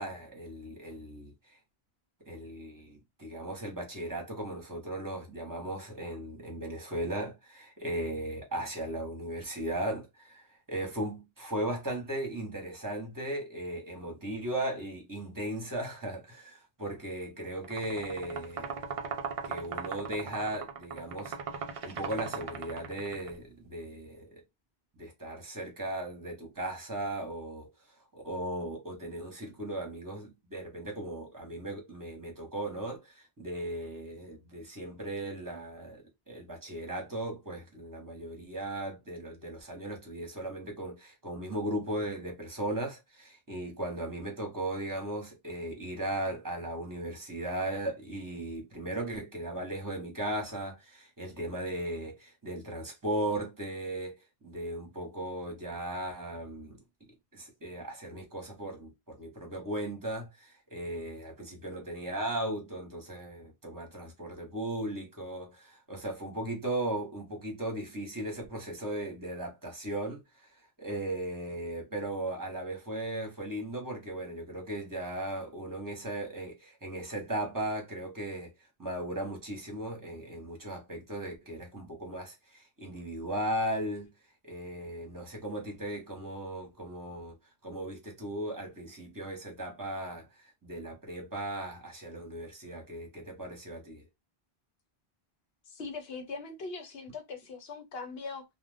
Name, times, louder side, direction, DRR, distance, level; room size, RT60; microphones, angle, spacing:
voice 1, 0.0-1.6 2.3-18.8 19.4-24.4 24.9-27.7 28.1-56.8 57.3-70.5 70.8-78.5 78.8-84.1 84.4-87.3 87.6-94.0, right 1 dB, 20° right, 1.0 m, -37 dB
sound 1, 17.6-23.3, right 6 dB, 50° right, 0.4 m, -38 dB
voice 2, 95.7-98.4, left 4 dB, 70° left, 0.9 m, -41 dB
2.4 x 2.2 x 3.3 m
omnidirectional pair, 1.1 m